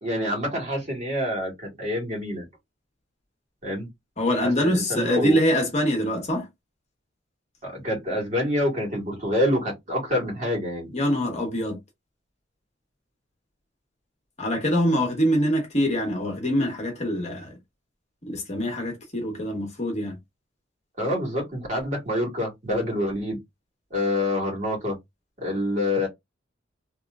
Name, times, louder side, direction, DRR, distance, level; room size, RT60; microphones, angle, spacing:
voice 1, 0.0-2.4 3.6-3.9 4.4-5.4 7.6-10.9 21.0-23.4 23.9-24.9 25.4-26.1, left 1 dB, 40° right, 1.9 m, -27 dB
voice 2, 4.2-6.5 10.9-11.8 14.4-17.5 18.2-20.2, equal, 35° left, 1.2 m, -24 dB
3.0 x 2.9 x 2.4 m
head